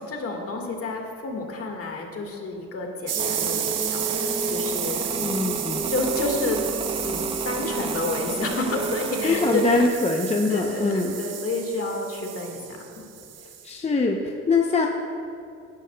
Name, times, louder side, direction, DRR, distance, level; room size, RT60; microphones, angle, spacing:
voice 1, 0.0-5.5 5.9-6.6 7.0-9.8 10.5-13.0, left 2 dB, 50° left, 2 dB, 1.7 m, -30 dB
sound 1, 3.1-13.7, right 9 dB, 55° right, 0.7 m, -32 dB
sound 2, 3.2-9.9, right 2 dB, 20° right, 0.7 m, -31 dB
voice 2, 5.2-5.9 9.2-11.2 13.6-14.9, left 3 dB, 20° left, 2 dB, 0.6 m, -23 dB
16.5 x 10.5 x 2.3 m, 2.6 s
cardioid pair, 90°, 30 cm